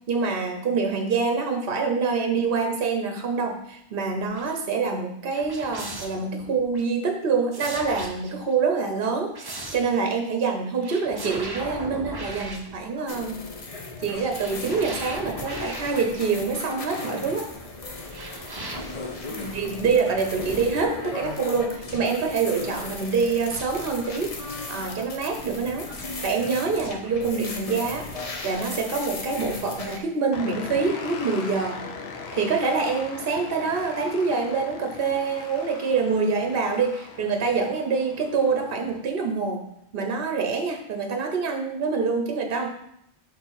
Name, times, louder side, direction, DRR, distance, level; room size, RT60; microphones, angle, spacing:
voice 1, 0.1-13.4 14.0-17.5 18.2-18.4 19.3-28.1 28.4-31.9 32.3-39.6 39.9-42.7, right 4 dB, 60° right, 3 dB, 0.9 m, -26 dB
sound 1, 4.2-4.6 5.3-6.9 7.5-8.5 9.0-10.0 10.8-13.3 14.3-16.9 18.1-18.8, right 2 dB, 25° right, 0.6 m, -38 dB
sound 2, 13.1-30.0, left 3 dB, 35° left, 0.8 m, -36 dB
sound 3, 30.3-39.0, left 4 dB, 75° left, 1.0 m, -40 dB
6.6 x 3.1 x 5.6 m, 0.77 s
omnidirectional pair, 1.1 m